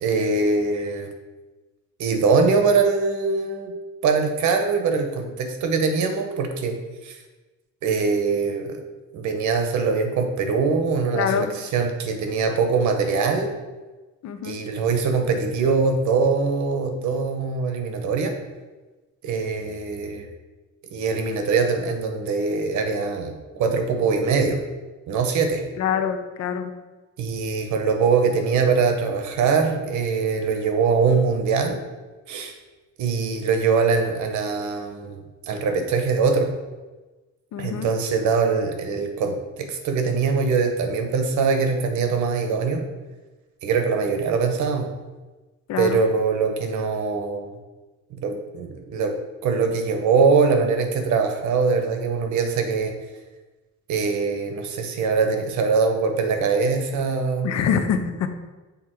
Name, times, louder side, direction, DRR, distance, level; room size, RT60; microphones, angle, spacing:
voice 1, 0.0-1.1 2.0-3.7 4.0-6.8 7.0-7.2 7.8-8.8 9.1-13.5 14.4-18.3 19.2-20.3 20.9-24.6 25.1-25.6 27.2-31.8 32.3-32.5 33.0-36.5 37.6-42.8 43.6-44.9 45.8-47.5 48.1-49.1 49.4-52.9 53.9-57.5, right 4 dB, 75° right, 5 dB, 0.9 m, -22 dB
voice 2, 11.1-11.6 14.2-14.6 25.8-26.8 37.5-37.9 45.7-46.0 57.4-58.3, left 7 dB, 65° left, 9 dB, 0.6 m, -25 dB
6.7 x 3.5 x 4.5 m, 1.2 s
cardioid pair, 180°, 30 cm